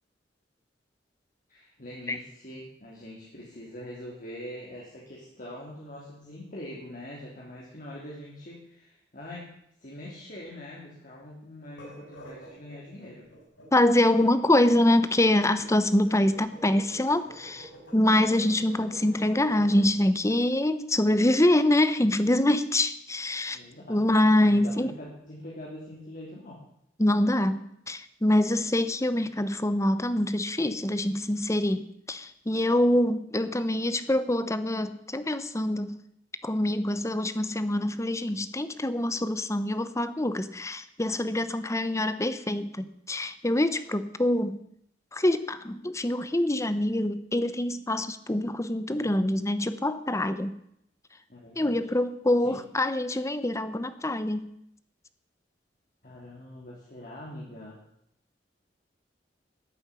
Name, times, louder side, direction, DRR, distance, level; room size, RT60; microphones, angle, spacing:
voice 1, 1.5-9.5 9.8-13.3 23.5-24.2 24.5-26.6 48.9-49.2 51.3-51.8 52.4-52.6 56.0-57.8, left 1 dB, 45° left, -4 dB, 3.4 m, -43 dB
sound 1, 11.7-19.9, right 1 dB, 85° left, 6.1 m, -48 dB
voice 2, 13.7-23.6 23.9-24.9 27.0-35.9 36.4-44.6 45.1-50.5 51.6-54.5, left 1 dB, 15° left, 13 dB, 0.9 m, -25 dB
14.0 x 8.8 x 9.8 m, 0.74 s
head